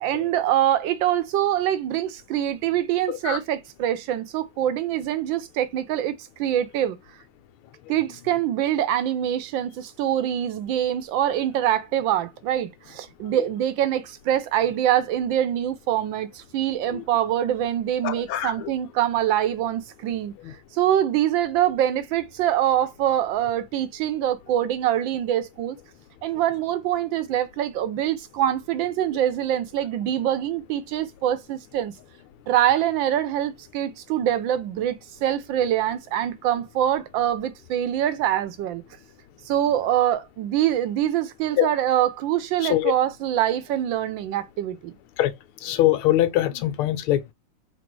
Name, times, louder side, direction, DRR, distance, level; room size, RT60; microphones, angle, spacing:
voice 1, 0.0-7.0 7.9-20.3 20.7-25.8 26.2-31.9 32.5-35.0 35.2-38.8 39.5-44.9, right 11 dB, 70° right, 1.3 m, -24 dB
voice 2, 3.1-3.4 16.9-17.0 18.0-18.7 20.4-20.5 41.6-41.7 42.6-42.9 45.2-45.3 45.6-47.3, left 13 dB, 80° left, 1.6 m, -23 dB
4.1 x 2.4 x 4.6 m
omnidirectional pair, 2.4 m